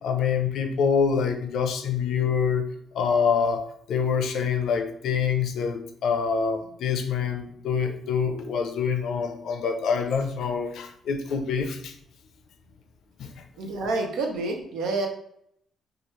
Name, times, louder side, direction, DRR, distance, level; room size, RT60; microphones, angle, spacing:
voice 1, 0.0-2.6 2.9-3.6 3.9-11.9 13.2-13.3, left 6 dB, 75° left, 6 dB, 0.4 m, -25 dB
voice 2, 13.6-15.1, right 3 dB, 85° right, 2 dB, 0.6 m, -28 dB
2.9 x 2.4 x 3.0 m, 0.69 s
cardioid pair, 90°, 0 cm